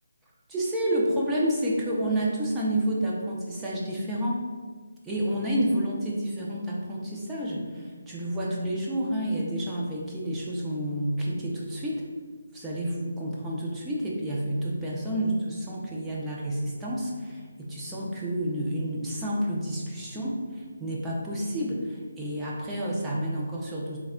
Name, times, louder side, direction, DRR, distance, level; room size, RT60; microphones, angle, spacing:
voice 1, 0.5-4.4 5.0-12.0 12.5-24.0, right 1 dB, 10° right, -5 dB, 0.4 m, -29 dB
3.2 x 2.1 x 3.6 m, 1.5 s
hypercardioid pair, 165°, 0 cm